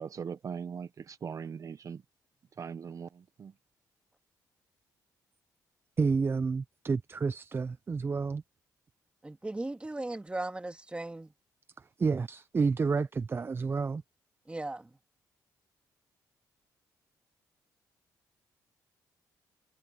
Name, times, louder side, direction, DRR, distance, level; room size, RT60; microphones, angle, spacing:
voice 1, 0.0-2.0 2.6-3.5, right 6 dB, 50° right, 0.9 m, -40 dB
voice 2, 6.0-8.4 12.0-14.0, right 4 dB, 30° right, 0.6 m, -29 dB
voice 3, 9.2-11.3 14.5-14.9, right 2 dB, 15° right, 2.2 m, -37 dB
cardioid pair, 80°, 7 cm